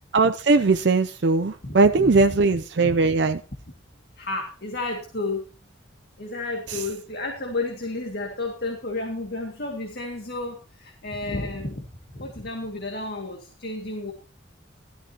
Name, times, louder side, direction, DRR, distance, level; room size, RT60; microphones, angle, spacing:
voice 1, 0.1-3.4 6.7-6.8, right 3 dB, 60° right, 7 dB, 0.5 m, -20 dB
voice 2, 1.6-2.2 2.8-2.9 4.2-5.5 6.2-14.1, left 2 dB, 55° left, 2 dB, 2.1 m, -32 dB
16.5 x 13.0 x 2.9 m, 0.34 s
head